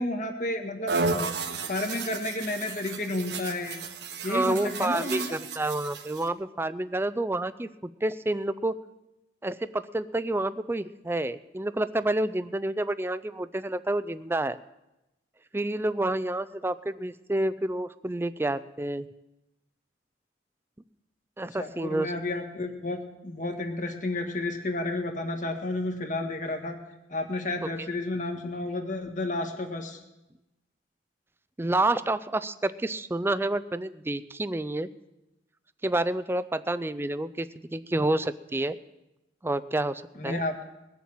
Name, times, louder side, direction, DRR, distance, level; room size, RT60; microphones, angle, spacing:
voice 1, 0.0-1.4 1.7-3.8 4.2-5.4 21.6-26.8 27.1-30.0 40.2-40.6, left 2 dB, 45° left, 4 dB, 1.8 m, -31 dB
sound 1, 0.9-6.3, right 3 dB, 75° right, 1.3 m, -33 dB
voice 2, 4.3-7.7 8.0-8.7 9.4-14.6 15.5-19.1 21.4-22.1 27.6-27.9 31.6-34.9 35.8-38.8 39.4-40.4, right 2 dB, 15° right, 14 dB, 0.4 m, -29 dB
20.5 x 7.2 x 7.6 m, 0.95 s
head